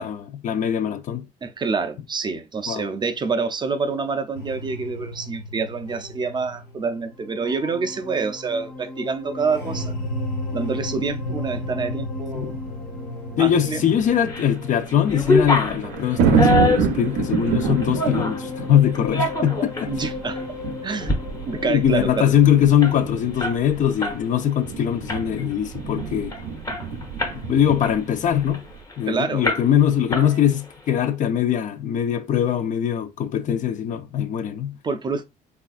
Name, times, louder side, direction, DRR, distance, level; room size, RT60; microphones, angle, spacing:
voice 1, 0.0-1.3 2.7-2.9 12.3-12.5 13.4-19.9 21.6-26.3 27.4-28.6 29.0-34.8, left 9 dB, 50° left, 0.4 m, -21 dB
voice 2, 1.4-9.9 10.5-12.6 13.4-13.8 19.9-20.4 20.8-21.1 21.4-22.3 29.1-29.4 34.8-35.2, right 4 dB, 25° right, 0.4 m, -27 dB
sound 1, 4.4-23.2, left 2 dB, 75° left, 1.3 m, -34 dB
sound 2, 12.4-12.7 13.7-13.8 14.3-28.8, right 5 dB, 90° right, 0.5 m, -27 dB
sound 3, 14.0-14.5 14.9-18.4 18.9-19.9 20.4-20.5 20.9-21.2 21.5-21.6 21.9-24.2 24.5-24.7 25.1-25.5 26.0-26.1 26.3-27.4 27.8-29.0 29.4-29.8 30.1-30.7, left 2 dB, 20° left, 0.8 m, -25 dB
3.2 x 2.4 x 2.4 m
cardioid pair, 110°, 17 cm